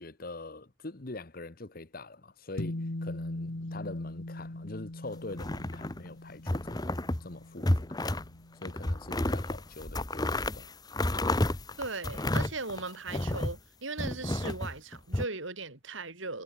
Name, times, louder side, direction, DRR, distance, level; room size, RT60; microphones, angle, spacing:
voice 1, 0.0-6.9 7.2-7.7 8.6-10.7, left 2 dB, 45° left, 1.2 m, -43 dB
sound 1, 2.6-9.2, left 1 dB, 70° left, 1.6 m, -41 dB
sound 2, 5.3-6.1 6.5-7.2 7.6-8.3 8.6-13.6 14.0-15.2, left 1 dB, 20° left, 1.1 m, -31 dB
voice 2, 11.8-16.4, right 3 dB, 70° right, 4.0 m, -38 dB
head